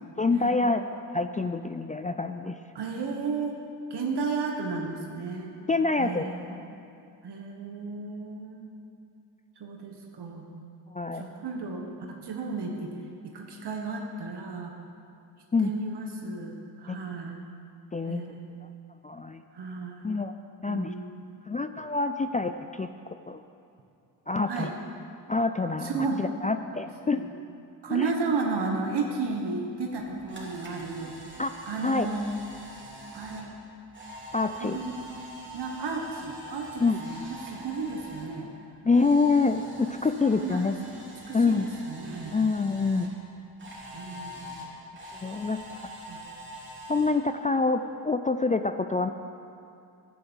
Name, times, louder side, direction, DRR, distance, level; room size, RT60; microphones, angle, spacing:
voice 1, 0.2-0.8 1.1-2.6 5.7-6.7 10.9-11.3 15.5-15.7 16.9-17.0 17.9-18.2 19.0-19.4 20.0-20.3 20.6-20.9 21.5-23.4 24.3-24.7 25.3-27.2 27.9-28.1 31.4-31.5 31.8-32.1 34.3-34.8 36.8-37.0 38.8-40.7 41.3-41.7 42.3-43.1 45.1-45.9 46.9-49.1, left 3 dB, 20° left, 8 dB, 0.4 m, -26 dB
voice 2, 2.7-3.6 3.9-5.5 6.0-6.7 7.2-8.7 9.6-10.5 11.1-12.9 13.3-14.7 15.6-17.4 18.1-18.5 19.5-20.1 20.7-21.4 24.5-24.7 25.8-26.3 27.0-27.3 27.8-31.2 31.7-32.4 33.1-33.5 34.6-35.0 35.5-38.5 39.9-41.0 41.3-42.4 43.9-44.7 46.1-46.3, right 4 dB, 65° right, 1 dB, 1.5 m, -33 dB
Camera, 29.9-38.3 38.6-43.1 43.6-47.1, equal, 25° right, 3.4 m, -45 dB
10.5 x 10.0 x 7.3 m, 2.5 s
cardioid pair, 70°, 43 cm